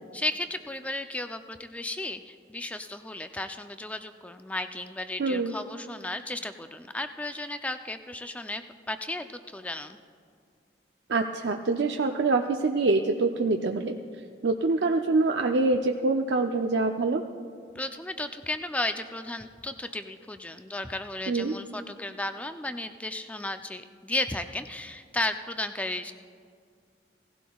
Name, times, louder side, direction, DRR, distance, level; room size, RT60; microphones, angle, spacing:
voice 1, 0.1-10.0 17.8-26.1, left 2 dB, 10° left, 8 dB, 0.4 m, -34 dB
voice 2, 5.2-5.5 11.1-14.0 14.4-17.2 21.3-21.5, right 3 dB, 75° right, 4 dB, 0.5 m, -25 dB
18.0 x 15.5 x 2.3 m, 2.2 s
head